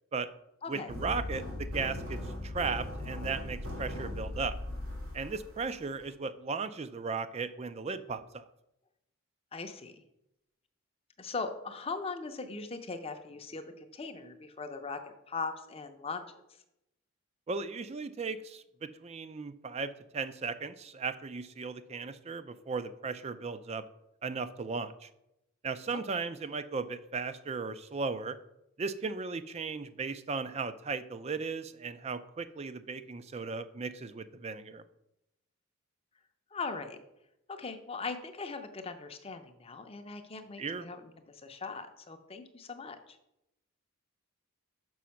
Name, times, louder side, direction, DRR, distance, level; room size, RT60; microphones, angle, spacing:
voice 1, 0.7-4.6 5.1-8.4 17.5-23.8 24.2-25.1 25.6-28.4 28.8-34.8 40.6-40.9, right 4 dB, 30° right, 13 dB, 0.4 m, -36 dB
sound 1, 0.9-6.1, left 1 dB, 85° right, 2.3 m, -38 dB
voice 2, 9.5-10.0 11.2-16.2 25.9-26.2 36.5-37.0 37.5-43.2, left 4 dB, 25° left, 7 dB, 0.6 m, -40 dB
6.2 x 5.0 x 5.7 m, 0.87 s
head